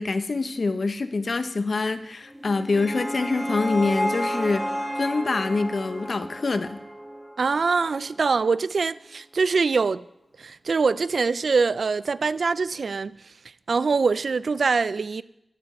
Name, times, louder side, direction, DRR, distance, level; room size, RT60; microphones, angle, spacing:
voice 1, 0.0-6.8, left 3 dB, 65° left, 0.7 m, -25 dB
sound 1, 2.3-7.5, equal, ahead, 1.5 m, -31 dB
voice 2, 7.4-10.0 10.4-13.2 13.7-15.2, right 4 dB, 80° right, 0.3 m, -23 dB
12.0 x 5.2 x 8.4 m
wide cardioid pair, 75°, 0 cm